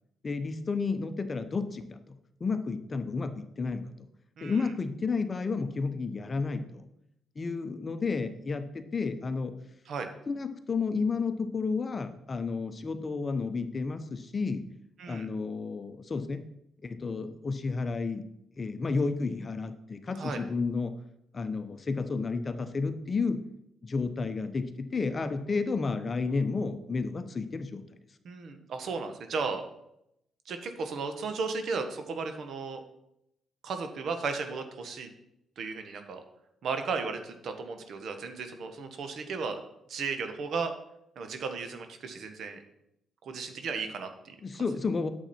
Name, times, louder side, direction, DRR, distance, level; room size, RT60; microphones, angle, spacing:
voice 1, 0.2-2.1 2.4-3.9 4.4-6.9 7.4-9.5 10.3-14.6 15.1-16.4 16.8-18.2 18.6-20.9 21.3-23.4 23.8-27.8 44.4-45.1, left 4 dB, 35° left, 9 dB, 0.8 m, -31 dB
voice 2, 4.4-4.7 9.9-10.1 15.0-15.3 20.2-20.4 28.2-29.6 30.5-32.8 33.6-35.1 35.6-36.2 36.6-39.6 39.9-40.7 41.2-42.6 43.2-44.3, right 4 dB, 65° right, 6 dB, 1.3 m, -35 dB
8.7 x 7.2 x 4.4 m, 0.80 s
cardioid pair, 90°, 0 cm